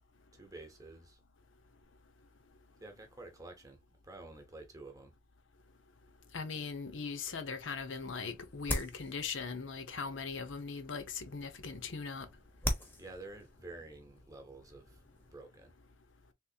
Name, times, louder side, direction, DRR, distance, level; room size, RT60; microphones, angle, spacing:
voice 1, 0.3-1.2 2.8-5.1 13.0-15.0 15.3-15.7, right 2 dB, 15° right, 0.9 m, -50 dB
voice 2, 6.3-12.3, left 5 dB, 70° left, 0.7 m, -40 dB
sound 1, 7.7-15.4, left 1 dB, 10° left, 0.8 m, -43 dB
3.5 x 3.1 x 2.7 m
head